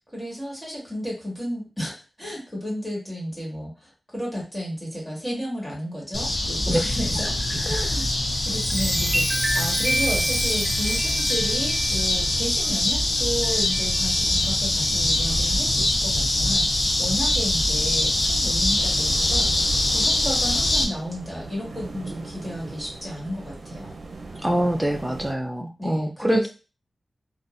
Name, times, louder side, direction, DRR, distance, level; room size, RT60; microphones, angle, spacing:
voice 1, 0.1-8.1 8.4-23.9 25.8-26.5, equal, 10° left, -3 dB, 1.8 m, -33 dB
sound 1, 6.1-20.8, left 1 dB, 50° left, 0.6 m, -23 dB
voice 2, 7.5-7.8 24.4-26.5, right 1 dB, 10° right, 5 dB, 0.4 m, -24 dB
Chime, 8.3-14.3 14.8-15.1, right 1 dB, 40° right, 0.8 m, -30 dB
sound 2, 18.7-25.3, right 3 dB, 75° right, 0.6 m, -40 dB
3.8 x 2.4 x 2.5 m, 0.33 s
wide cardioid pair, 90°, 0 cm